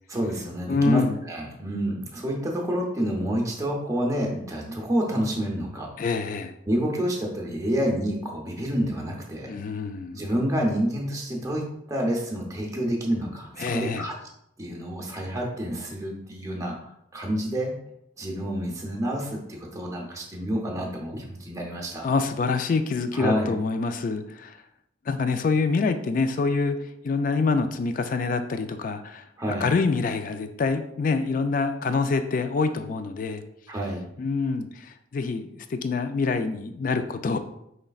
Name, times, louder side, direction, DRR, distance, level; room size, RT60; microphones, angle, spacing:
voice 1, 0.1-1.0 1.3-5.9 6.7-9.5 10.1-14.2 14.6-17.7 18.2-22.0 23.1-23.5 29.4-29.7 33.7-34.0, equal, 15° right, -1 dB, 0.7 m, -28 dB
voice 2, 0.7-1.2 6.0-6.6 9.5-10.3 13.6-14.1 22.0-24.6 25.1-29.2 29.6-33.4 34.2-37.4, left 4 dB, 45° left, 9 dB, 0.3 m, -26 dB
5.0 x 3.2 x 2.3 m, 0.78 s
head